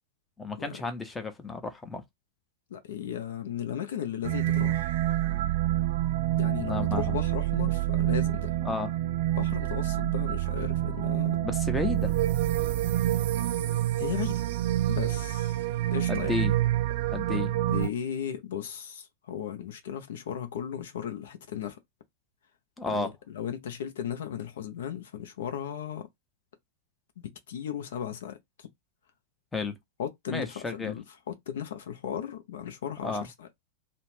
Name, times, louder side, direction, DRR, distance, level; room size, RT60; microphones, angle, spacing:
voice 1, 0.4-2.0 6.6-7.2 8.6-8.9 11.4-12.1 16.1-16.5 17.1-17.5 22.8-23.1 29.5-29.7 30.3-31.0 33.0-33.3, left 3 dB, 10° left, 0.6 m, -32 dB
voice 2, 2.7-4.9 6.4-8.6 9.3-11.4 14.0-14.5 14.9-15.6 15.9-16.4 17.3-21.8 22.9-23.1 23.3-26.1 27.2-28.7 30.0-33.5, left 9 dB, 60° left, 0.5 m, -36 dB
sound 1, 4.2-17.9, right 14 dB, 55° right, 0.5 m, -27 dB
2.4 x 2.0 x 3.2 m
figure-of-eight pair, 90°, 0 cm